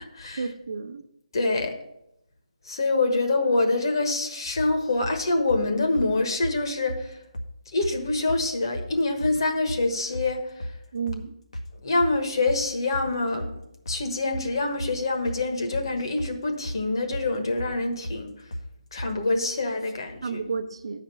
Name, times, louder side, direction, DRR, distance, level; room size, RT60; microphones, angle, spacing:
voice 1, 0.4-1.1 10.9-11.3 20.2-21.0, right 5 dB, 55° right, 0.8 m, -31 dB
voice 2, 1.3-1.8 2.6-7.2 7.7-10.7 11.8-13.5 13.9-18.5 18.9-20.4, left 2 dB, 45° left, 1.2 m, -25 dB
sound 1, 4.6-5.2 5.5-5.6 5.9-6.1 6.4-6.6 6.9-7.0 7.3-7.5 7.8-8.0 8.3-8.9 9.2-9.4 9.7-9.8 10.1-10.3 10.6-10.8 11.1-11.2 11.5-11.7 12.0-12.6 12.9-13.1 13.4-13.6 13.9-14.0 14.3-14.5 14.8-14.9 15.2-15.4 15.7-16.3 16.6-16.8 17.1-17.3 17.6-17.7 18.0-18.2 18.5-18.7 19.0-19.1, equal, 90° left, 1.6 m, -34 dB
8.5 x 5.1 x 6.9 m
hypercardioid pair, 175°, 4 cm